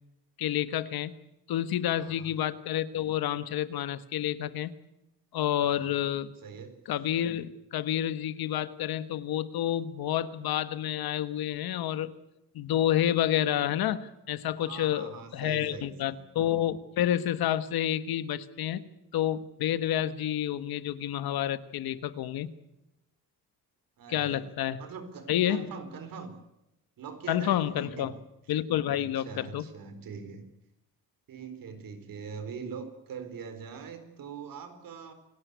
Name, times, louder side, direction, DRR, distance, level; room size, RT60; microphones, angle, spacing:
voice 1, 0.4-1.1 1.5-4.7 5.3-6.3 6.9-12.1 12.5-18.8 19.1-22.5 24.1-24.8 25.3-25.7 27.3-28.1 28.5-29.6, left 11 dB, 90° left, 13 dB, 1.5 m, -29 dB
voice 2, 2.0-2.3 5.6-5.9 6.4-6.8 14.6-16.2 24.0-24.5 24.8-26.4 27.0-28.2 28.9-30.5 31.3-35.1, right 6 dB, 65° right, 10 dB, 4.3 m, -43 dB
28.0 x 18.0 x 8.3 m, 0.90 s
cardioid pair, 135°, 36 cm